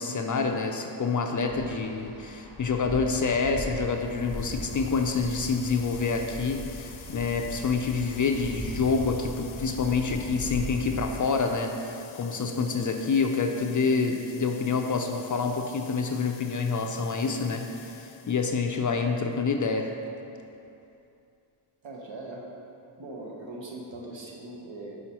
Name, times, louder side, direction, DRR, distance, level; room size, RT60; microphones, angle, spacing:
voice 1, 0.0-19.9, left 4 dB, 40° left, 4 dB, 0.4 m, -27 dB
Wind, 1.5-11.3, equal, 20° right, 1.2 m, -39 dB
sound 1, 3.8-18.8, left 8 dB, 80° left, 0.7 m, -49 dB
voice 2, 21.8-22.5 23.0-25.0, right 2 dB, 65° right, -1 dB, 1.2 m, -40 dB
6.0 x 5.0 x 4.2 m, 2.7 s
cardioid pair, 85°, 48 cm